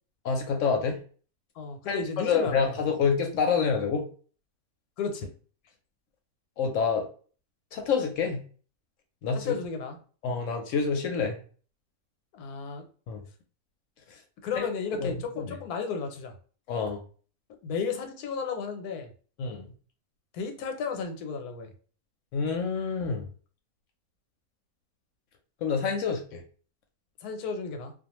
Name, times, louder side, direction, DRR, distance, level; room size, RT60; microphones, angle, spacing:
voice 1, 0.2-1.0 1.9-4.1 6.6-7.1 7.7-8.4 9.2-9.5 10.2-11.4 13.1-13.2 14.1-14.2 14.5-14.7 14.9-15.6 16.7-17.0 19.4-19.7 22.3-23.3 25.6-26.4, left 5 dB, 70° left, 4 dB, 0.8 m, -27 dB
voice 2, 1.6-2.6 5.0-5.3 9.4-10.0 12.3-12.8 14.4-16.3 17.6-19.1 20.3-21.7 27.2-27.9, left 5 dB, 90° left, 5 dB, 1.1 m, -33 dB
2.5 x 2.2 x 2.9 m, 0.41 s
omnidirectional pair, 1.6 m